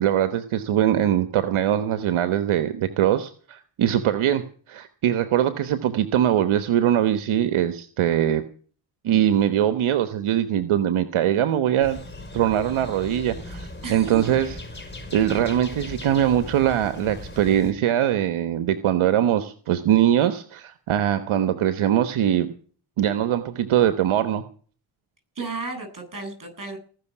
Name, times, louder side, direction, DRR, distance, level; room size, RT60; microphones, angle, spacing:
voice 1, 0.0-8.4 9.0-12.0 12.3-14.6 15.1-22.5 23.0-24.4, right 10 dB, 75° right, 11 dB, 1.2 m, -22 dB
sound 1, 11.8-17.7, left 2 dB, 20° left, 5.8 m, -38 dB
voice 2, 13.8-14.2 25.3-26.8, right 3 dB, 40° right, 5 dB, 8.0 m, -33 dB
19.0 x 6.5 x 10.0 m, 0.43 s
cardioid pair, 65°, 49 cm